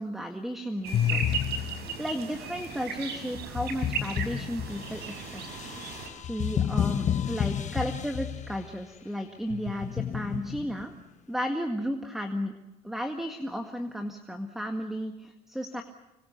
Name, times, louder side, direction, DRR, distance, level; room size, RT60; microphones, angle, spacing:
voice 1, 0.0-1.4 2.0-5.4 6.3-10.9 11.3-12.5 12.8-15.8, equal, ahead, 5 dB, 1.9 m, -34 dB
sound 1, 0.8-6.1, right 5 dB, 75° right, 5.6 m, -36 dB
sound 2, 0.9-2.1 3.4-8.7 9.5-10.8, left 9 dB, 45° left, 1.3 m, -31 dB
26.0 x 23.0 x 6.8 m, 0.99 s
cardioid pair, 110°, 17 cm